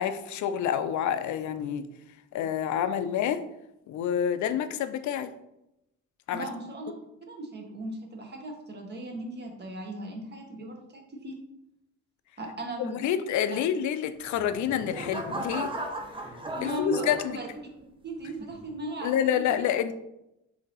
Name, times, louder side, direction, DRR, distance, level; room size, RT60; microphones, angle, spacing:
voice 1, 0.0-1.8 2.3-3.4 3.9-5.3 6.3-6.5 12.8-15.7 16.6-17.4 19.0-19.9, left 9 dB, 70° left, 11 dB, 0.5 m, -28 dB
voice 2, 6.3-6.9 7.2-11.3 12.4-13.0 13.5-13.6 16.6-17.5 18.0-19.7, right 1 dB, 35° right, 1 dB, 1.1 m, -37 dB
sound 1, 14.3-17.8 18.4-18.7, right 1 dB, 15° right, 0.7 m, -36 dB
3.8 x 2.8 x 4.0 m, 0.86 s
cardioid pair, 90°, 30 cm